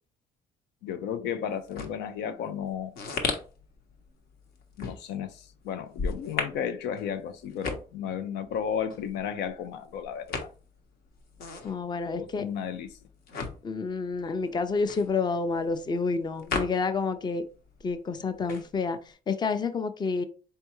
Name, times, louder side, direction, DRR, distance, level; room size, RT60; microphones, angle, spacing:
voice 1, 0.8-3.0 4.8-10.5 12.1-13.0 15.5-15.6, left 8 dB, 85° left, 0.6 m, -33 dB
sound 1, 1.5-17.3 17.5-19.1, left 4 dB, 65° left, 1.1 m, -37 dB
voice 2, 11.6-12.5 13.6-17.4 17.8-20.2, left 4 dB, 25° left, 0.5 m, -29 dB
4.4 x 3.4 x 3.0 m
cardioid pair, 110°, 17 cm